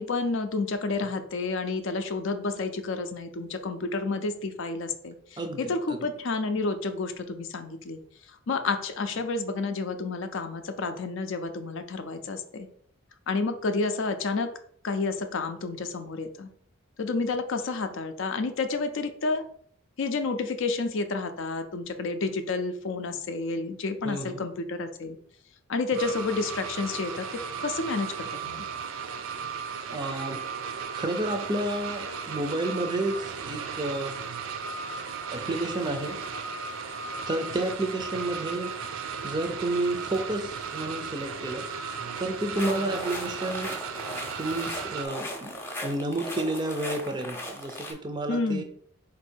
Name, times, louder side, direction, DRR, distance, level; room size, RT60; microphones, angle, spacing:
voice 1, 0.0-8.0 8.3-12.7 13.3-14.5 14.8-16.5 17.0-19.4 20.0-25.2 25.7-28.6 42.6-43.0 48.3-48.6, left 3 dB, 60° left, 8 dB, 0.5 m, -30 dB
voice 2, 5.4-6.0 24.0-24.4 29.9-34.2 35.3-36.2 37.3-41.7 42.2-43.8 44.3-45.5 45.8-48.6, right 2 dB, 20° right, 5 dB, 0.4 m, -31 dB
sound 1, 25.9-45.1, right 6 dB, 75° right, 0.5 m, -36 dB
sound 2, 42.5-47.9, equal, 10° left, 0.7 m, -37 dB
4.0 x 2.6 x 4.4 m, 0.62 s
head